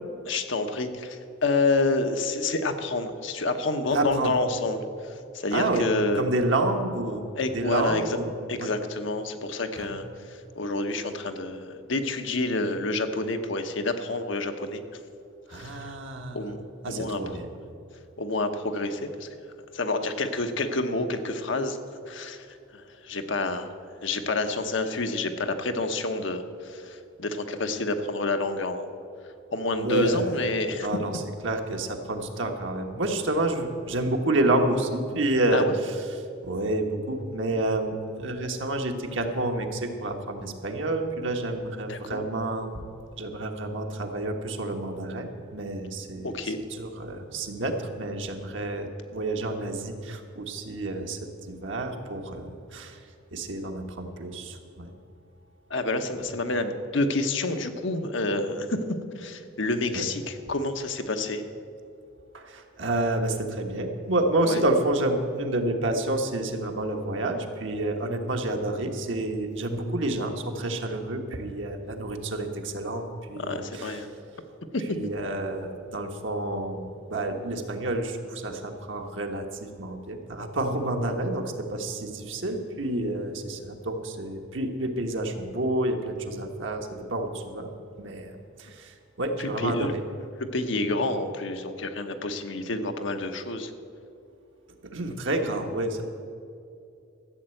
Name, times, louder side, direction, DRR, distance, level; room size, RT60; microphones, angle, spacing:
voice 1, 0.2-6.2 7.4-8.1 8.5-14.8 15.5-16.0 16.3-17.4 18.2-19.3 19.7-21.8 22.1-22.5 22.7-23.7 24.0-28.9 29.5-30.9 35.5-35.7 41.9-42.2 46.2-46.6 55.7-58.8 59.2-61.4 64.4-64.6 73.4-74.1 74.7-75.0 89.4-89.9 90.4-93.7, left 2 dB, 65° left, 7 dB, 1.0 m, -28 dB
voice 2, 3.9-4.4 5.5-5.9 6.1-8.3 8.6-8.7 9.8-10.0 15.5-16.5 16.8-17.5 29.7-30.3 30.8-36.1 36.4-42.8 43.2-51.2 51.5-53.0 53.3-54.9 56.2-56.3 59.9-60.0 62.3-74.0 74.9-90.0 94.8-96.0, right 2 dB, 65° right, 3 dB, 1.4 m, -29 dB
13.0 x 8.1 x 7.8 m, 2.5 s
head